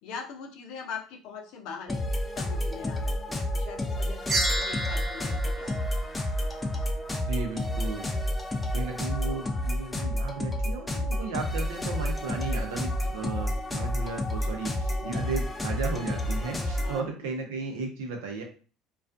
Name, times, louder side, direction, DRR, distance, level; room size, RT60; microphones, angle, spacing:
voice 1, 0.0-2.0 2.3-5.8 9.3-9.5 16.8-17.3, left 6 dB, 70° left, 2 dB, 0.6 m, -42 dB
sound 1, 1.9-17.0, left 1 dB, 15° left, 0.5 m, -30 dB
sound 2, 4.3-6.8, right 2 dB, 25° right, 0.7 m, -32 dB
voice 2, 7.3-8.1 8.7-18.4, right 4 dB, 85° right, 2 dB, 0.7 m, -35 dB
2.4 x 2.3 x 2.5 m, 0.38 s
supercardioid pair, 85°, 0 cm